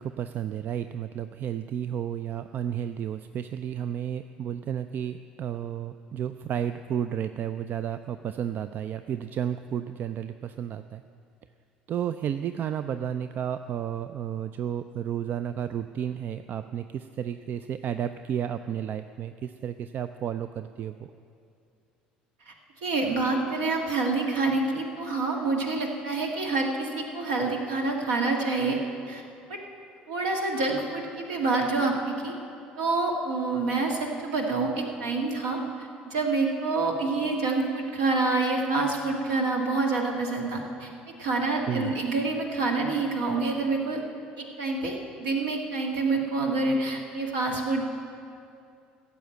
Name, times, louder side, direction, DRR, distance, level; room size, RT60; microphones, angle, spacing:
voice 1, 0.0-11.0 11.9-21.1 41.7-41.9, right 9 dB, 45° right, 11 dB, 0.4 m, -32 dB
voice 2, 22.8-28.8 29.1-29.2 29.5-29.6 30.1-32.3 32.8-40.9 41.2-44.0 44.4-45.0 45.2-47.8, right 3 dB, 65° right, 1 dB, 1.9 m, -27 dB
15.0 x 7.1 x 9.0 m, 2.5 s
figure-of-eight pair, 60°, 5 cm